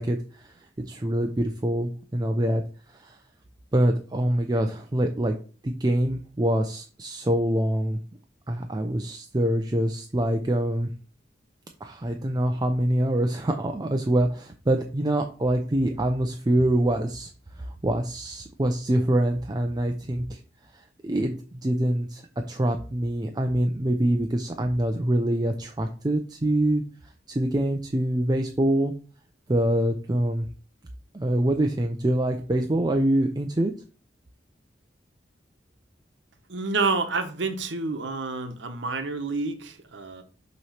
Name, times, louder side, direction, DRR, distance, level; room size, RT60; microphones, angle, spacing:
voice 1, 0.0-2.6 2.9-3.2 3.7-5.3 5.6-8.0 8.5-10.9 11.8-17.3 17.6-20.4 20.7-22.2 22.5-26.8 27.3-28.9 29.5-30.5 31.1-33.7, right 1 dB, 20° right, 0.5 m, -25 dB
voice 2, 36.5-40.2, right 3 dB, 75° right, 1.0 m, -28 dB
5.8 x 3.1 x 5.7 m
head